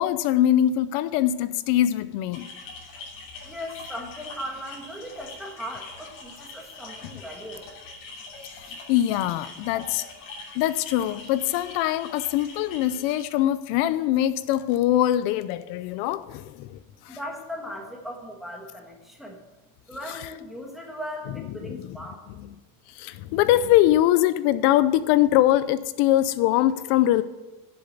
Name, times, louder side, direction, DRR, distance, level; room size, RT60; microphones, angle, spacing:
voice 1, 0.0-2.5 8.5-10.1 10.5-17.2 20.1-20.3 21.6-22.0 22.3-22.5 22.9-27.2, left 13 dB, 80° left, 0.6 m, -23 dB
sound 1, 2.3-13.2, left 3 dB, 55° left, 3.0 m, -43 dB
voice 2, 3.4-7.8 17.1-19.4 19.9-22.3, equal, ahead, 1.4 m, -38 dB
7.8 x 7.1 x 8.1 m
cardioid pair, 175°, 39 cm